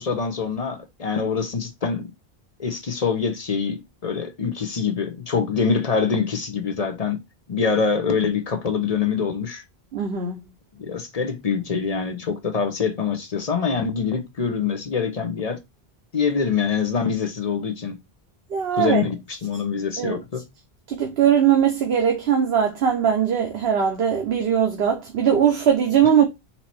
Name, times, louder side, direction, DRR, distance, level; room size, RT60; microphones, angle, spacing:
voice 1, 0.0-2.1 2.6-7.2 7.5-9.6 10.8-15.6 16.1-18.0 18.7-20.4, left 6 dB, 45° left, 0.7 m, -25 dB
voice 2, 9.9-10.4 18.5-19.0 20.0-20.2 20.9-26.3, right 8 dB, 75° right, 1.0 m, -20 dB
4.4 x 2.8 x 4.2 m
omnidirectional pair, 1.0 m